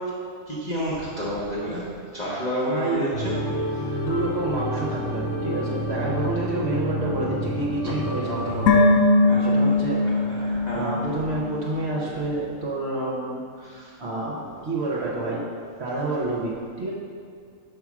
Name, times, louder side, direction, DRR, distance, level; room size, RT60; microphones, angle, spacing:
voice 1, 0.5-1.8 2.1-3.3 3.9-4.0 9.3-9.5 10.0-10.9 13.6-13.9, equal, 35° left, -9 dB, 1.1 m, -30 dB
voice 2, 2.7-3.1 3.9-10.0 10.4-13.4 13.7-15.4 15.8-16.9, right 2 dB, 55° right, -4 dB, 1.1 m, -29 dB
sound 1, 3.1-8.8, equal, 60° left, 1.3 m, -29 dB
sound 2, 8.7-12.0 12.2-12.3, left 2 dB, 80° left, 1.0 m, -21 dB
5.2 x 4.6 x 6.0 m, 2.3 s
omnidirectional pair, 1.4 m